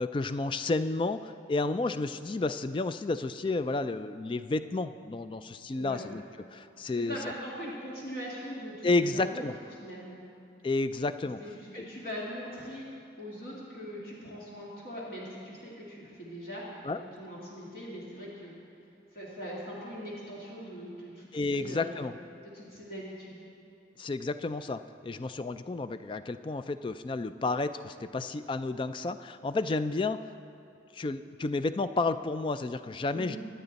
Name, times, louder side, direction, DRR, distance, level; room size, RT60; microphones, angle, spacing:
voice 1, 0.0-6.2 6.5-7.2 8.8-9.5 10.6-11.4 11.7-11.9 16.8-17.0 21.3-22.2 24.0-30.3 30.9-33.4, left 3 dB, 25° left, 12 dB, 0.3 m, -31 dB
voice 2, 6.9-9.4 9.8-10.2 11.4-12.9 13.2-16.6 17.0-18.5 19.1-22.0 22.4-23.4 33.1-33.4, equal, 50° left, -6 dB, 2.2 m, -41 dB
24.0 x 8.8 x 4.1 m, 2.5 s
head